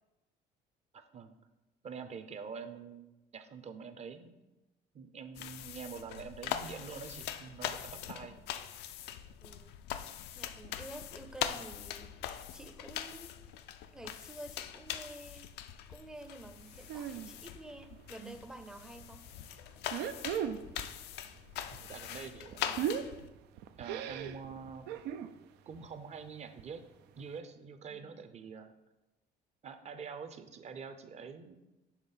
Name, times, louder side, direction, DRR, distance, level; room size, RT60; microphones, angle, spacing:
voice 1, 0.9-1.3 1.8-4.3 4.9-8.4 21.7-23.0 23.8-24.9 25.7-26.8 27.2-28.7 29.6-31.6, right 5 dB, 40° right, 8 dB, 0.7 m, -46 dB
sound 1, 5.3-23.3, left 10 dB, 80° left, 0.5 m, -42 dB
voice 2, 8.1-8.4 9.4-9.7 10.3-12.2 12.5-13.3 13.9-15.5 15.9-19.2 27.9-28.2, right 1 dB, 5° right, 8 dB, 0.5 m, -50 dB
sound 2, 16.9-17.3 17.6-18.4 18.8-19.0 19.8-21.0 21.2-25.3 25.7-26.0 26.3-26.4 26.6-26.7 27.2-27.3, right 9 dB, 85° right, 0.4 m, -38 dB
7.3 x 3.6 x 5.6 m, 1.0 s
cardioid pair, 110°, 17 cm